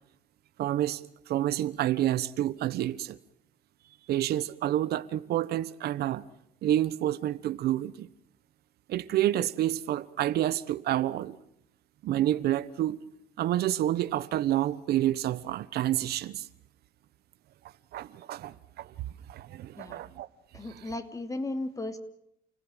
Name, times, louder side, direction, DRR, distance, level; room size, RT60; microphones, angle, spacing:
voice 1, 0.6-3.2 4.1-6.2 6.6-8.1 8.9-11.4 12.0-13.0 13.4-16.5 17.9-18.9 19.3-20.3 20.7-20.9, right 13 dB, 70° right, 1.2 m, -29 dB
voice 2, 20.5-22.0, left 2 dB, 20° left, 2.7 m, -35 dB
30.0 x 17.0 x 9.0 m
cardioid pair, 110°, 17 cm